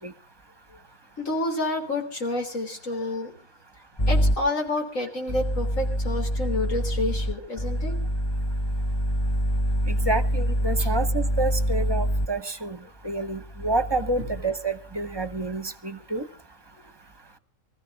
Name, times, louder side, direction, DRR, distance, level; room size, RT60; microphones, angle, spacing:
voice 1, 1.2-3.3 4.1-8.0 10.8-10.9, left 2 dB, 75° left, 3 dB, 3.9 m, -29 dB
sound 1, 4.0-4.4 5.3-12.3 13.3-14.5 15.0-15.4, equal, 25° left, 0.7 m, -26 dB
voice 2, 9.9-12.8 13.0-16.2, right 2 dB, 20° right, 11 dB, 0.9 m, -28 dB
25.0 x 15.0 x 3.6 m, 0.41 s
omnidirectional pair, 1.4 m